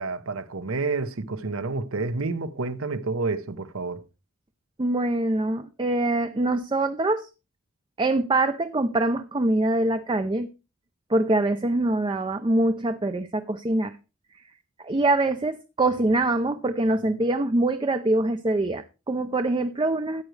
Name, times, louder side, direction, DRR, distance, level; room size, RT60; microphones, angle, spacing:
voice 1, 0.0-4.0, right 3 dB, 65° right, 0.9 m, -29 dB
voice 2, 4.8-7.3 8.0-10.5 11.1-13.9 14.8-20.2, right 2 dB, 20° right, 0.5 m, -24 dB
14.0 x 9.2 x 3.3 m
head